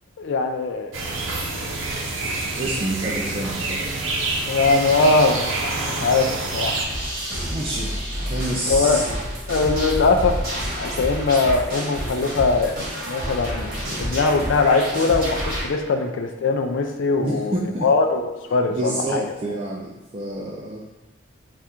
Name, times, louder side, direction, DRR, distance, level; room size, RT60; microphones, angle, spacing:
voice 1, 0.2-0.9 4.5-6.9 8.7-9.1 9.5-10.4 10.8-13.7 14.0-19.2, left 3 dB, 70° left, 4 dB, 0.3 m, -21 dB
sound 1, 0.9-6.8, right 2 dB, 80° right, 0.7 m, -27 dB
voice 2, 2.5-3.8 7.1-9.0 12.1-12.3 13.8-14.1 17.1-17.9 18.5-20.8, right 1 dB, 30° right, -4 dB, 0.4 m, -29 dB
sound 2, 6.9-15.6, equal, 45° right, 1.3 m, -29 dB
3.5 x 2.4 x 4.2 m, 1.0 s
head